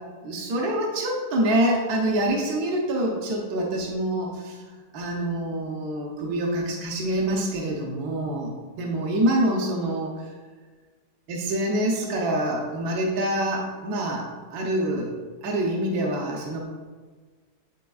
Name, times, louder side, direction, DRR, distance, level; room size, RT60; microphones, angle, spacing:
voice 1, 0.2-4.6 4.9-10.3 11.3-14.2 14.5-15.1 15.4-16.7, right 1 dB, 65° right, -1 dB, 1.4 m, -26 dB
11.0 x 4.1 x 2.4 m, 1.5 s
omnidirectional pair, 1.8 m